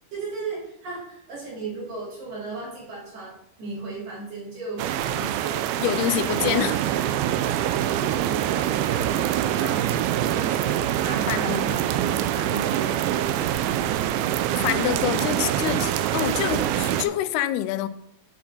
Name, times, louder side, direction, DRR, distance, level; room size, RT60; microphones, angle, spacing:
voice 1, 0.1-5.7 6.3-6.7 7.4-9.3 9.6-10.0 10.3-13.5 13.8-15.6, right 3 dB, 60° right, 5.4 m, -37 dB
sound 1, 4.8-17.1, right 11 dB, 80° right, 2.3 m, -25 dB
voice 2, 5.8-6.8 11.3-11.7 14.6-17.9, left 13 dB, 90° left, 2.6 m, -26 dB
8.7 x 7.6 x 4.3 m
omnidirectional pair, 4.4 m